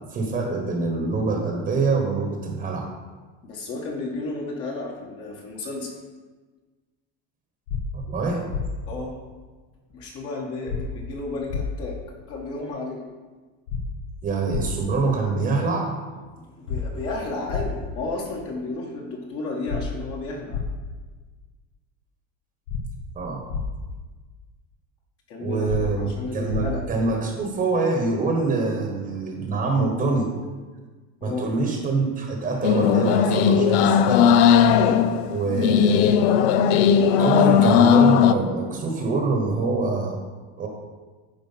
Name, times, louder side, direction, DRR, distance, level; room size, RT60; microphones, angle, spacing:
voice 1, 0.1-2.9 7.9-8.4 14.2-15.9 23.1-23.5 25.4-30.3 31.2-34.3 35.3-36.5 37.2-40.2 40.6-40.7, right 3 dB, 25° right, 2 dB, 1.3 m, -25 dB
voice 2, 3.4-5.9 8.9-9.2 9.9-12.0 12.3-13.0 16.3-20.6 25.3-26.8 31.2-31.4 35.4-35.6, left 3 dB, 45° left, -1 dB, 1.7 m, -32 dB
sound 1, 7.7-7.8 8.5-8.6 10.7-10.8 11.5-11.6 13.7-13.8 14.5-14.6 16.7-16.8 17.5-17.6 19.7-19.8 20.5-20.6 22.7-22.8 23.5-23.6 25.7-25.8 26.5-26.6, left 7 dB, 85° left, 1.1 m, -28 dB
sound 2, 32.6-38.3, left 7 dB, 70° left, 0.6 m, -17 dB
9.4 x 4.7 x 5.8 m, 1.4 s
supercardioid pair, 150°, 32 cm